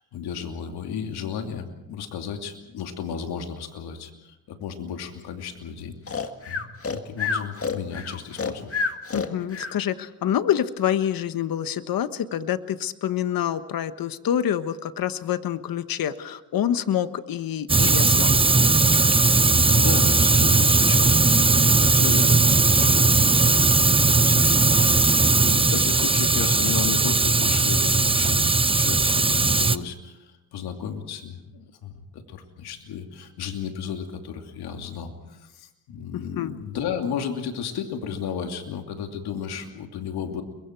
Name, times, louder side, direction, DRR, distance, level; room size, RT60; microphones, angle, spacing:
voice 1, 0.0-8.7 19.1-40.4, left 7 dB, 85° left, 4 dB, 2.8 m, -34 dB
Breathing, 6.1-9.8, left 5 dB, 35° left, 1.9 m, -28 dB
voice 2, 9.1-18.4 36.1-36.5, left 10 dB, 65° left, 11 dB, 1.3 m, -27 dB
Fire, 17.7-29.8, right 3 dB, 15° right, 0.8 m, -18 dB
29.5 x 23.0 x 4.6 m, 0.92 s
cardioid pair, 85°, 37 cm